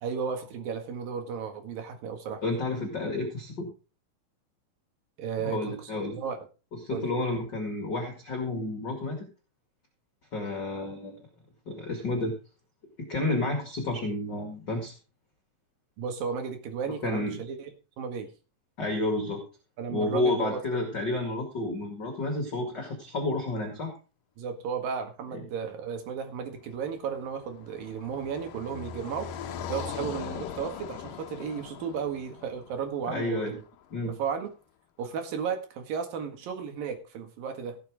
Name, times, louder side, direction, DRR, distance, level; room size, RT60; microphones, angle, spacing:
voice 1, 0.0-2.4 5.2-5.9 6.2-6.5 6.9-7.1 16.0-17.7 18.0-18.3 19.8-20.9 24.4-33.5 34.0-34.5 35.0-37.8, right 6 dB, 80° right, 6 dB, 3.6 m, -34 dB
voice 2, 2.4-3.7 5.4-6.2 6.7-9.3 10.3-11.2 11.7-12.3 13.1-14.9 17.0-17.4 18.8-19.4 19.9-23.9 33.1-33.6 33.9-34.1, left 2 dB, 35° left, 3 dB, 2.5 m, -30 dB
Car passing by, 26.6-33.8, left 8 dB, 75° left, 2.5 m, -41 dB
17.0 x 7.1 x 4.8 m, 0.34 s
omnidirectional pair, 4.0 m